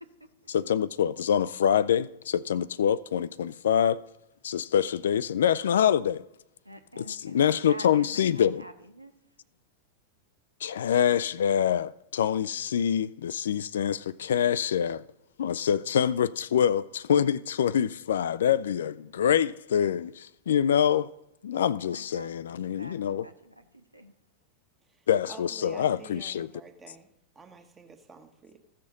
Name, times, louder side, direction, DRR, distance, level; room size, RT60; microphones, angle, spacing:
voice 1, 0.5-4.0 4.4-6.3 7.0-8.6 10.6-15.0 15.4-21.1 21.4-23.3 25.1-26.5, left 9 dB, 65° left, 0.4 m, -25 dB
voice 2, 6.6-9.1 21.9-22.3 22.8-24.1, equal, 85° right, 0.8 m, -46 dB
voice 3, 25.3-27.1 27.3-28.6, right 4 dB, 20° right, 1.4 m, -48 dB
15.0 x 6.6 x 4.0 m
figure-of-eight pair, 90°, 0 cm